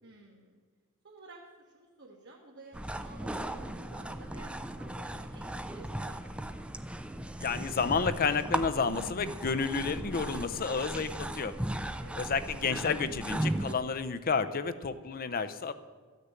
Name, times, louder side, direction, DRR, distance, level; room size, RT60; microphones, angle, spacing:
voice 1, 0.0-0.5 1.0-6.7 12.0-12.3, right 2 dB, 55° right, -2 dB, 1.7 m, -53 dB
sound 1, 2.7-13.7, right 1 dB, 5° right, 0.5 m, -37 dB
voice 2, 7.4-11.5 12.2-15.7, left 5 dB, 40° left, 11 dB, 0.6 m, -31 dB
13.0 x 6.7 x 9.0 m, 1.5 s
head